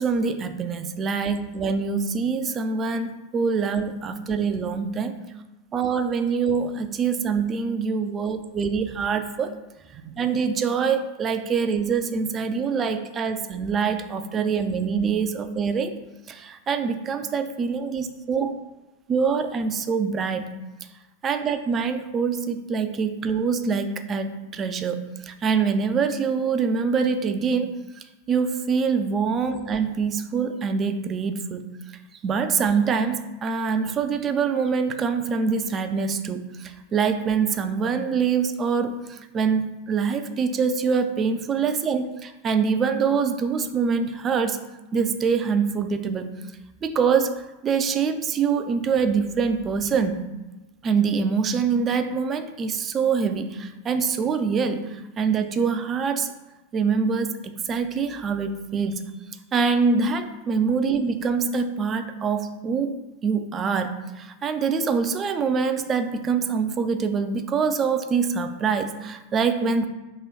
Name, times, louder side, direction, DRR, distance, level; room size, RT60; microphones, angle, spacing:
voice 1, 0.0-5.1 5.7-9.5 9.9-16.0 16.3-18.5 19.1-20.6 21.2-31.7 32.2-44.6 44.9-46.4 46.8-50.2 50.8-56.3 56.7-59.0 59.5-62.9 63.2-69.9, right 5 dB, 25° right, 9 dB, 0.3 m, -25 dB
3.0 x 2.9 x 4.1 m, 1.1 s
figure-of-eight pair, 90°, 0 cm